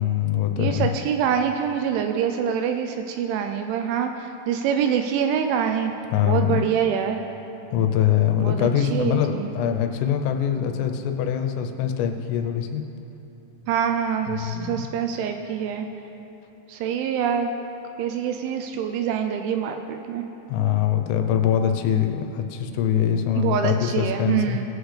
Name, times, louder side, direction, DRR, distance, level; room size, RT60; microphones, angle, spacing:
voice 1, 0.0-0.9 6.1-6.6 7.7-12.8 14.3-14.8 20.5-24.6, left 9 dB, 90° left, 6 dB, 3.3 m, -23 dB
voice 2, 0.6-5.9 6.2-7.2 8.4-9.5 13.7-15.9 16.7-17.5 18.0-20.2 23.4-24.6, right 8 dB, 85° right, 6 dB, 2.8 m, -25 dB
19.5 x 8.1 x 3.3 m, 3.0 s
omnidirectional pair, 5.7 m